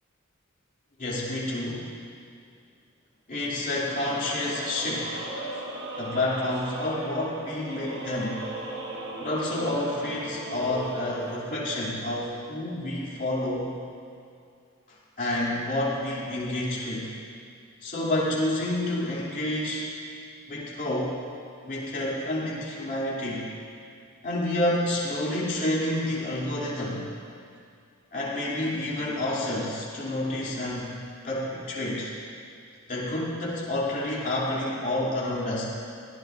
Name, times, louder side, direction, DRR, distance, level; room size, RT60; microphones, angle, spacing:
voice 1, 1.0-1.9 3.3-5.3 6.0-8.4 9.2-13.7 15.2-17.1 17.8-19.9 20.5-21.2 21.6-23.5 24.2-27.0 28.1-30.9 31.2-32.1 32.9-35.7, left 1 dB, 40° left, -7 dB, 3.3 m, -29 dB
sound 1, 4.0-11.4, right 2 dB, 55° right, 1.8 m, -38 dB
20.5 x 16.5 x 2.7 m, 2.4 s
head